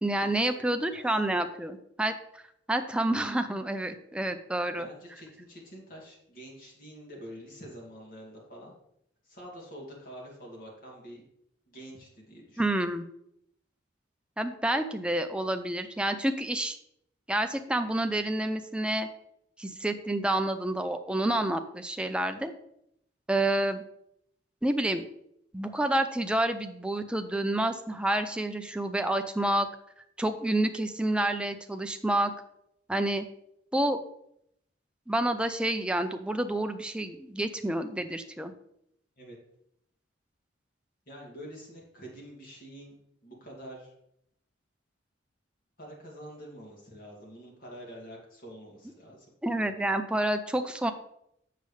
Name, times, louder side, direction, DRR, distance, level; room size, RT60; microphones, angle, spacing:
voice 1, 0.0-2.4 2.7-4.9 12.6-13.0 14.4-16.8 17.3-19.1 19.6-22.5 23.3-23.8 24.6-25.0 25.5-29.7 30.2-32.3 32.9-33.3 33.7-34.0 35.1-38.5 49.4-50.9, right 1 dB, 5° right, 7 dB, 0.5 m, -29 dB
voice 2, 4.7-8.7 9.2-11.2 11.7-12.6 39.2-39.4 41.1-42.9 43.2-43.9 45.8-49.3, equal, 50° left, -2 dB, 2.4 m, -46 dB
8.0 x 6.8 x 3.3 m, 0.74 s
head